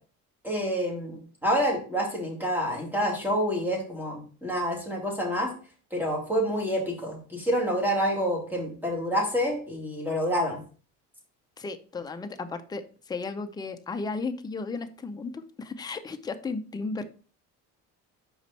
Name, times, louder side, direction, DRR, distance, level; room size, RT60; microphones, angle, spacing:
voice 1, 0.4-5.5 5.9-10.6, equal, 5° right, -1 dB, 2.4 m, -28 dB
voice 2, 11.6-17.0, left 4 dB, 10° left, 8 dB, 0.5 m, -34 dB
5.2 x 4.9 x 4.0 m, 0.39 s
cardioid pair, 110°, 35 cm